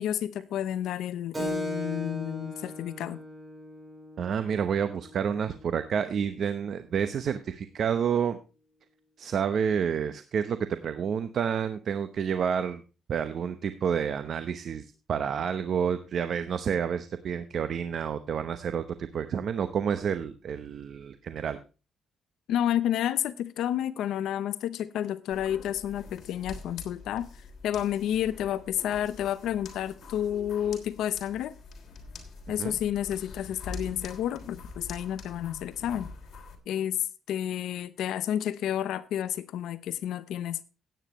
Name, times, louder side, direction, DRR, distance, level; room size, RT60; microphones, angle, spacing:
voice 1, 0.0-3.2 22.5-27.3 27.6-31.5 32.5-36.1 36.7-37.0 37.3-40.6, left 11 dB, 80° left, 0.7 m, -30 dB
Keyboard (musical), 1.3-6.4, left 1 dB, 20° right, 5.4 m, -38 dB
voice 2, 4.2-8.4 9.2-12.8 13.1-21.6 32.6-32.8, right 7 dB, 60° right, 0.8 m, -29 dB
sound 1, 25.3-36.6, left 3 dB, 60° left, 3.2 m, -45 dB
16.5 x 9.1 x 3.1 m
cardioid pair, 90°, 0 cm